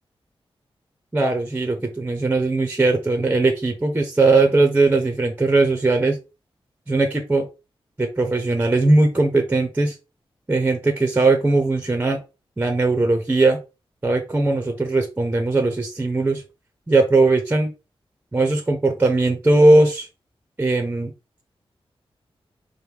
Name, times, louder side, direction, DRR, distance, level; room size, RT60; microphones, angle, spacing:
voice 1, 1.1-6.2 6.9-7.5 8.0-9.9 10.5-12.2 12.6-13.6 14.0-16.4 16.9-17.7 18.3-20.1 20.6-21.1, right 2 dB, 15° right, 4 dB, 0.7 m, -19 dB
5.1 x 2.2 x 4.7 m, 0.28 s
wide cardioid pair, 175°, 10 cm